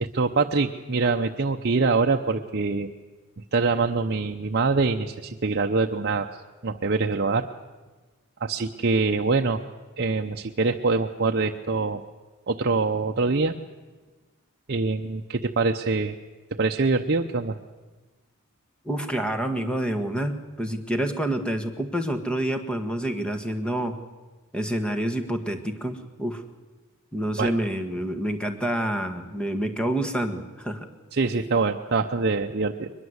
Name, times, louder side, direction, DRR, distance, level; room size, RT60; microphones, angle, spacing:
voice 1, 0.0-2.9 3.4-6.3 6.6-7.5 8.4-9.6 10.0-12.0 12.5-13.6 14.7-16.1 16.5-17.6 27.4-27.5 31.1-32.9, right 4 dB, 45° right, 4 dB, 0.7 m, -24 dB
voice 2, 18.8-24.0 24.5-26.4 27.1-30.9, right 1 dB, 5° left, 6 dB, 1.5 m, -28 dB
22.0 x 21.0 x 8.0 m, 1.3 s
head